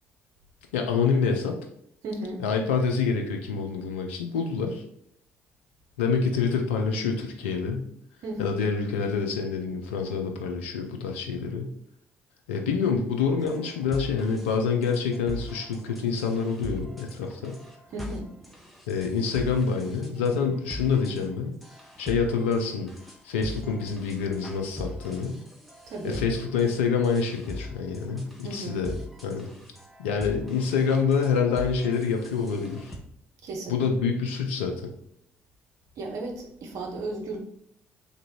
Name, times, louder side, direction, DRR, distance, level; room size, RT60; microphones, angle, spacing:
voice 1, 0.7-1.6 2.4-4.8 6.0-7.9 8.4-11.7 12.5-17.6 18.9-21.6 22.0-22.9 23.2-25.4 26.0-29.0 29.2-29.5 30.0-33.0 33.7-34.9, left 5 dB, 80° left, 3 dB, 0.3 m, -27 dB
voice 2, 2.0-2.4 8.2-8.6 17.9-18.3 25.9-26.2 28.4-28.8 33.4-33.8 36.0-37.4, right 2 dB, 60° right, 2 dB, 0.8 m, -34 dB
sound 1, 13.4-33.0, left 1 dB, ahead, 0.8 m, -42 dB
3.3 x 2.6 x 2.8 m, 0.71 s
figure-of-eight pair, 45°, 6 cm